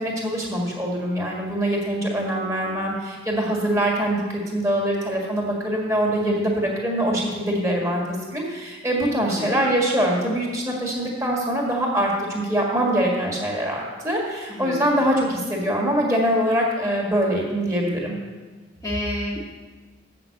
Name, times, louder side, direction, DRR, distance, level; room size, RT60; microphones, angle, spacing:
voice 1, 0.0-18.2, equal, 15° right, -2 dB, 1.7 m, -23 dB
voice 2, 9.3-9.6 14.5-14.9 18.8-19.4, equal, 20° left, -4 dB, 1.1 m, -29 dB
7.7 x 6.0 x 7.7 m, 1.3 s
head